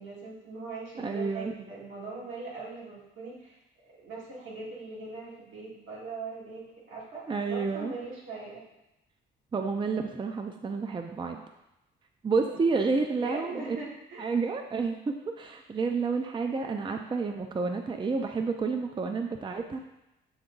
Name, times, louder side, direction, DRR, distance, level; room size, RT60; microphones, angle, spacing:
voice 1, 0.0-3.6 3.9-8.6 12.5-12.6 13.1-14.3, right 3 dB, 80° right, -6 dB, 2.3 m, -41 dB
voice 2, 1.0-1.5 7.3-7.9 9.5-11.4 12.2-13.6 14.2-19.8, right 4 dB, 25° right, 5 dB, 0.5 m, -30 dB
7.9 x 3.5 x 3.9 m, 0.91 s
cardioid pair, 90°, 20 cm